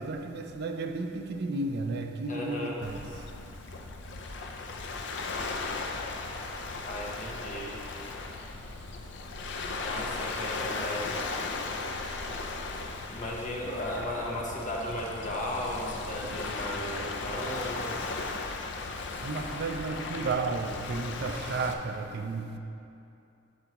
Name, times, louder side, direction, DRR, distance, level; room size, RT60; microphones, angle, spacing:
voice 1, 0.0-3.0 19.2-22.6, right 3 dB, 55° right, 0.4 m, -33 dB
voice 2, 2.3-2.8 6.8-7.8 9.8-11.1 13.1-18.0, left 1 dB, 40° left, 1.0 m, -35 dB
Waves surf, 2.8-21.7, left 3 dB, 65° left, 0.5 m, -37 dB
11.5 x 4.6 x 2.9 m
head